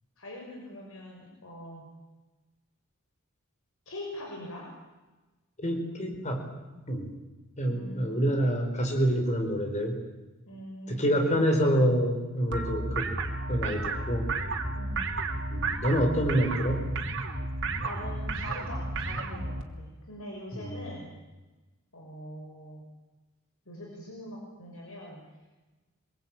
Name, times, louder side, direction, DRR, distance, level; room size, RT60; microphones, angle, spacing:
voice 1, 0.2-1.9 3.9-4.7 7.7-8.3 10.5-11.5 12.4-12.6 14.7-15.0 17.8-21.1 21.9-22.8 23.7-25.2, left 1 dB, 70° left, -1 dB, 6.1 m, -43 dB
voice 2, 5.6-6.4 6.9-7.1 7.6-10.0 10.9-13.1 13.5-14.2 15.5-16.9 20.5-20.9, equal, 35° left, 4 dB, 4.7 m, -27 dB
sound 1, 12.5-19.6, right 2 dB, 60° right, 3.1 m, -32 dB
25.0 x 22.0 x 9.1 m, 1.2 s
head